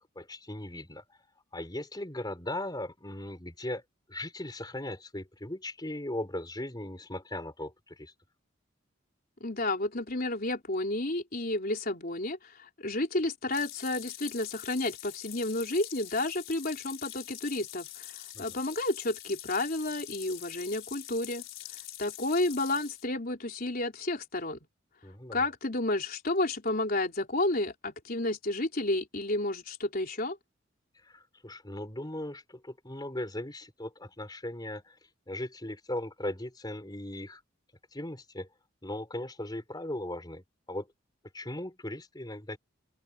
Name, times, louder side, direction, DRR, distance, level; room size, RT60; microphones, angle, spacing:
voice 1, 0.2-1.0 1.5-3.8 4.1-8.1 18.3-18.4 25.0-25.5 31.0-34.9 35.3-37.4 37.9-38.5 38.8-40.9 41.3-42.6, left 1 dB, 20° left, 4.2 m, -38 dB
voice 2, 9.4-21.4 22.0-24.6 25.3-30.4, left 2 dB, 50° left, 3.9 m, -31 dB
sound 1, 13.5-23.1, left 14 dB, 85° left, 4.8 m, -45 dB
open air
head